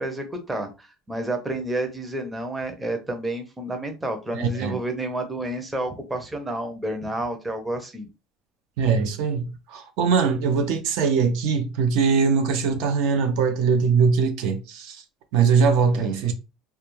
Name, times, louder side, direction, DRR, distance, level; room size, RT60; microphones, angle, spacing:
voice 1, 0.0-8.1 15.9-16.1, right 1 dB, 10° right, 0.5 m, -30 dB
voice 2, 4.3-4.8 8.8-15.0 15.3-16.3, right 5 dB, 70° right, 0.5 m, -21 dB
2.3 x 2.2 x 3.0 m
cardioid pair, 140°, 0 cm